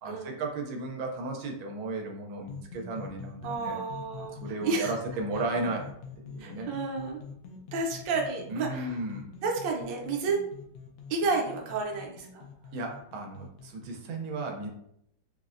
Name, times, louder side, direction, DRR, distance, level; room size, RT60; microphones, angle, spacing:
voice 1, 0.0-3.8 4.4-6.7 8.5-9.3 12.7-14.7, right 2 dB, 90° right, 2 dB, 1.4 m, -35 dB
sound 1, 2.4-13.9, left 6 dB, 75° left, 1.1 m, -45 dB
voice 2, 3.4-4.9 6.4-7.2 7.7-9.0 9.4-10.4 11.1-12.4, right 3 dB, 70° right, 0 dB, 1.2 m, -31 dB
4.0 x 2.1 x 2.4 m, 0.73 s
omnidirectional pair, 2.2 m